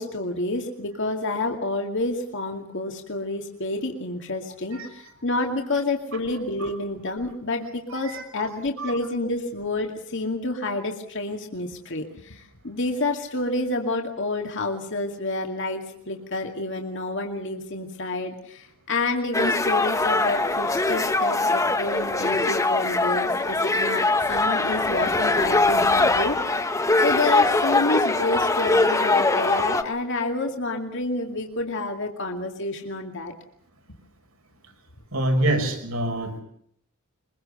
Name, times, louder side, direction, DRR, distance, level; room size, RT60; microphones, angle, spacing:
voice 1, 0.0-26.7 27.0-33.3, left 2 dB, 60° left, 3 dB, 2.4 m, -29 dB
voice 2, 6.3-6.7 7.9-9.1 35.1-36.4, right 1 dB, 75° right, 5 dB, 5.5 m, -27 dB
sound 1, 19.3-29.8, left 2 dB, 15° left, 1.4 m, -22 dB
24.0 x 22.0 x 6.8 m, 0.68 s
head